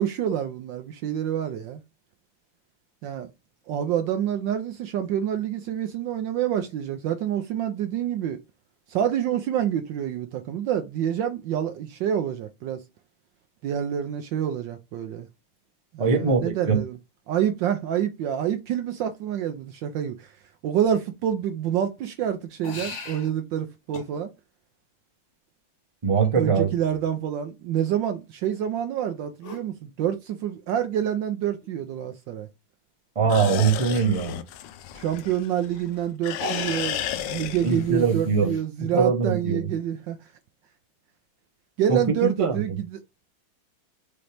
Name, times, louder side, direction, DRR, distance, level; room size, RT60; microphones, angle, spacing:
voice 1, 0.0-1.8 3.0-3.3 3.7-8.4 8.9-12.8 13.6-15.3 15.9-17.0 17.3-20.3 20.6-24.3 26.3-32.5 34.9-40.3 41.8-43.0, right 10 dB, 75° right, 1.1 m, -27 dB
voice 2, 16.0-16.8 26.0-26.7 33.1-34.4 37.6-38.5 38.9-39.6 41.9-42.6, right 5 dB, 35° right, 0.5 m, -22 dB
sound 1, 22.6-23.3 23.9-24.1 26.2-26.3 29.4-29.6 31.1-31.2 31.6-31.7 32.0-32.1 35.2-35.3 36.3-38.6, left 3 dB, 45° left, 1.0 m, -37 dB
sound 2, 33.3-35.9 36.2-38.1, left 11 dB, 75° left, 1.1 m, -33 dB
5.2 x 2.9 x 3.3 m
omnidirectional pair, 2.4 m